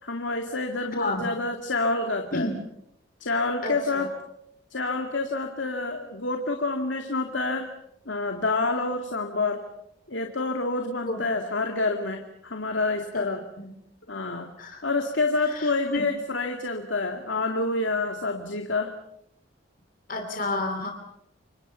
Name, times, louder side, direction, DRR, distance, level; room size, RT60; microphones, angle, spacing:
voice 1, 0.0-2.5 3.2-4.1 4.7-7.7 8.1-9.6 10.1-13.4 14.1-14.5 14.8-18.9, left 3 dB, 65° left, 4 dB, 2.4 m, -28 dB
voice 2, 1.0-1.3 2.3-2.5 3.6-3.7 11.1-11.2 13.1-13.2 13.6-13.7 14.6-14.8 15.9-16.0 20.1-20.9, left 2 dB, 40° left, 4 dB, 2.8 m, -29 dB
30.0 x 26.0 x 5.7 m, 0.77 s
head